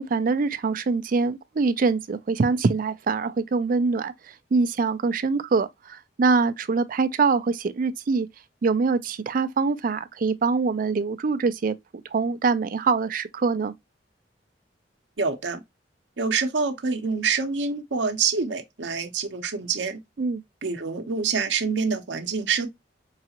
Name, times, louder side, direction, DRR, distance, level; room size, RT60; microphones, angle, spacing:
voice 1, 0.0-8.3 8.6-13.7 20.2-20.4, right 4 dB, 50° right, 0.4 m, -24 dB
voice 2, 15.2-15.6 16.2-20.0 20.6-22.7, right 5 dB, 80° right, 0.7 m, -26 dB
4.7 x 2.4 x 2.8 m
head